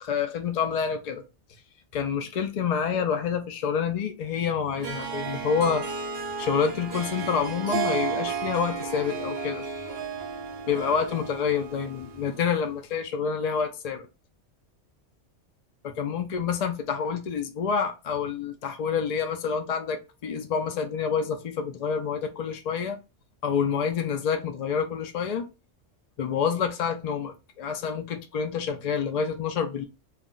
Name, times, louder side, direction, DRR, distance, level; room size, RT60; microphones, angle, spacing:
voice 1, 0.0-1.2 1.9-5.9 6.4-9.6 10.7-14.1 15.8-23.0 23.4-25.5 26.2-29.9, left 6 dB, 65° left, 0.4 m, -28 dB
Harp, 4.8-12.5, right 5 dB, 60° right, 0.8 m, -33 dB
2.4 x 2.0 x 3.7 m
omnidirectional pair, 1.2 m